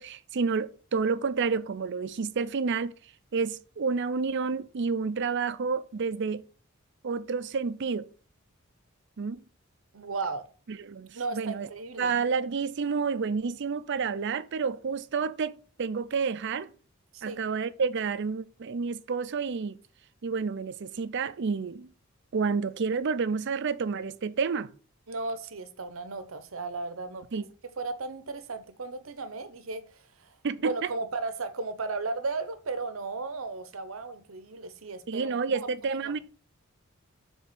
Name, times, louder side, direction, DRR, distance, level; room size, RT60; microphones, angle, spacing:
voice 1, 0.0-2.9 3.3-6.4 7.0-8.1 9.2-9.4 10.7-11.7 12.0-16.7 17.2-19.8 20.2-21.9 22.3-24.7 27.3-27.5 30.4-30.7 35.1-36.2, right 5 dB, 60° right, 0.5 m, -29 dB
voice 2, 9.9-10.5 11.1-12.1 17.1-17.4 25.1-27.5 27.8-30.3 30.6-35.3 35.6-35.7 36.0-36.1, right 3 dB, 75° right, 0.9 m, -35 dB
7.3 x 3.5 x 5.8 m
head